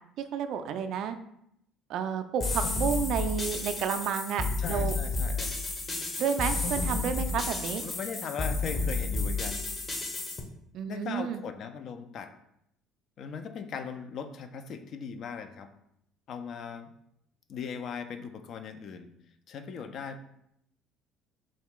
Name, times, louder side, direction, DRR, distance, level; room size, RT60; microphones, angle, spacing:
voice 1, 0.3-1.2 1.9-5.0 6.2-7.8 10.7-11.4, right 7 dB, 60° right, 8 dB, 0.3 m, -31 dB
sound 1, 2.4-10.4, left 3 dB, 35° left, 0.8 m, -31 dB
voice 2, 4.6-5.5 7.8-9.6 10.9-12.3 13.2-15.7 16.3-16.9 17.5-19.1 19.5-20.2, left 6 dB, 55° left, 8 dB, 0.4 m, -39 dB
3.8 x 2.3 x 3.7 m, 0.75 s
hypercardioid pair, 65°, 0 cm